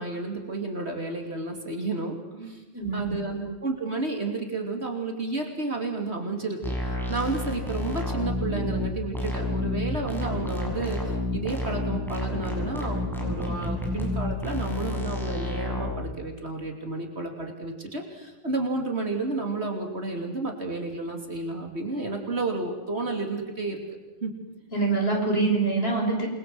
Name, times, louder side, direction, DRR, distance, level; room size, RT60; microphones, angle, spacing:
voice 1, 0.0-2.6 2.9-23.8 24.2-24.3, right 3 dB, 60° right, 3 dB, 3.3 m, -31 dB
voice 2, 2.7-3.4 24.7-26.3, right 3 dB, 55° left, 1 dB, 6.2 m, -25 dB
sound 1, 6.6-15.9, left 1 dB, ahead, 7.2 m, -30 dB
28.0 x 22.0 x 7.9 m, 1.1 s
omnidirectional pair, 1.3 m